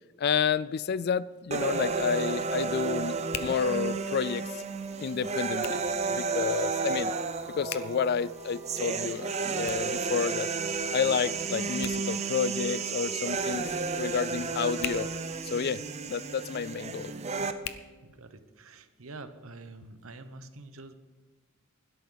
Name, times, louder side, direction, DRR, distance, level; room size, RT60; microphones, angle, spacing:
voice 1, 0.2-4.6 5.0-7.1 7.5-10.5 10.9-15.1 15.4-17.1, left 6 dB, 50° left, 0.3 m, -30 dB
Hands, 1.1-18.7, left 9 dB, 85° left, 0.8 m, -48 dB
sound 1, 1.5-17.5, right 4 dB, 30° right, 0.6 m, -32 dB
Wind instrument woodwind instrument, 4.8-18.2, equal, 10° right, 3.5 m, -52 dB
voice 2, 18.0-20.9, right 2 dB, 75° right, 1.1 m, -47 dB
16.5 x 12.5 x 4.0 m
head